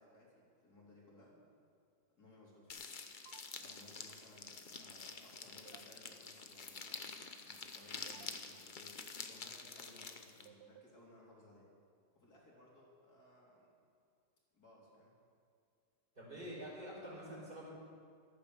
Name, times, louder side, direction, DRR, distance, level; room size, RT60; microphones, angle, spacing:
voice 1, 0.0-1.4 2.2-2.8 3.6-11.7 12.1-13.7 14.5-15.1, left 1 dB, 65° left, -4 dB, 4.1 m, -62 dB
sound 1, 2.7-10.5, left 4 dB, 40° left, 0.8 m, -48 dB
sound 2, 3.3-3.4 5.7-5.8 8.1-8.3 10.5-10.8, right 11 dB, 75° right, 0.6 m, -57 dB
voice 2, 16.1-17.7, equal, 30° right, -11 dB, 4.6 m, -47 dB
14.0 x 12.5 x 7.0 m, 2.2 s
omnidirectional pair, 1.7 m